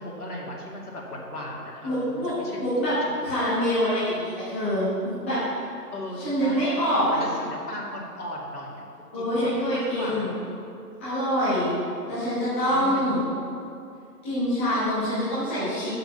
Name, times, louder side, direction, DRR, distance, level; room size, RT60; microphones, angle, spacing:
voice 1, 0.0-2.7 3.0-3.3 5.9-8.9 9.1-10.4 12.7-13.1, left 1 dB, 65° left, -3 dB, 2.7 m, -37 dB
voice 2, 1.8-2.3 2.6-3.0 3.2-5.4 6.2-7.2 9.1-10.3 11.0-11.8 12.1-13.2 14.2-15.9, equal, 10° left, -14 dB, 1.4 m, -25 dB
8.2 x 7.9 x 7.2 m, 2.5 s
figure-of-eight pair, 165°, 49 cm